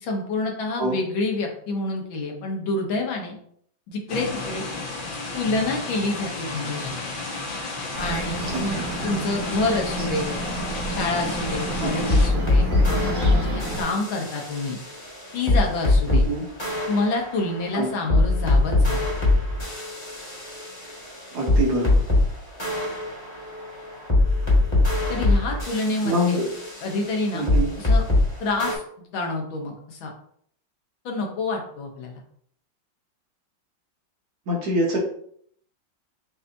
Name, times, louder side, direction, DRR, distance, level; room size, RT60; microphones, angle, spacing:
voice 1, 0.0-3.4 3.9-4.7 5.3-7.0 8.0-10.4 10.9-14.8 15.3-16.2 16.9-19.0 25.1-26.4 26.8-27.4 27.8-28.0 28.4-30.1 31.1-32.2, left 3 dB, 85° left, 1 dB, 1.7 m, -28 dB
sound 1, 4.1-12.3, left 3 dB, 60° left, 0.5 m, -33 dB
Bird, 7.9-13.8, right 1 dB, 25° right, 1.5 m, -30 dB
voice 2, 8.5-8.8 11.8-12.1 16.1-16.4 17.7-17.9 21.3-21.9 26.0-26.5 27.3-27.7 34.5-35.0, equal, 60° right, -2 dB, 1.6 m, -25 dB
sound 2, 11.8-16.3 16.6-22.3 22.6-28.3 28.6-28.7, left 2 dB, 15° left, 1.2 m, -22 dB
6.6 x 2.7 x 2.6 m, 0.64 s
omnidirectional pair, 2.1 m